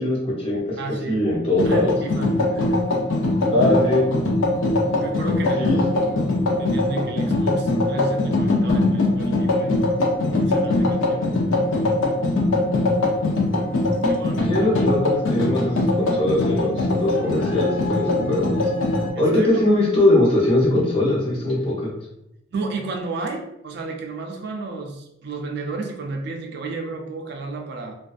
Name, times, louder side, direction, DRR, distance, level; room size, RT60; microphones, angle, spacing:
voice 1, 0.0-0.6 1.1-1.9 3.5-4.1 5.6-5.8 14.5-18.7 19.2-21.9, left 1 dB, 30° left, -5 dB, 0.7 m, -21 dB
voice 2, 0.8-1.3 1.6-3.1 5.0-6.3 6.6-9.8 10.3-11.3 13.7-14.7 19.1-19.8 22.5-27.9, right 3 dB, 55° right, 2 dB, 0.4 m, -32 dB
sound 1, 1.6-19.1, left 2 dB, 85° left, 0.5 m, -22 dB
2.4 x 2.2 x 2.4 m, 0.82 s
head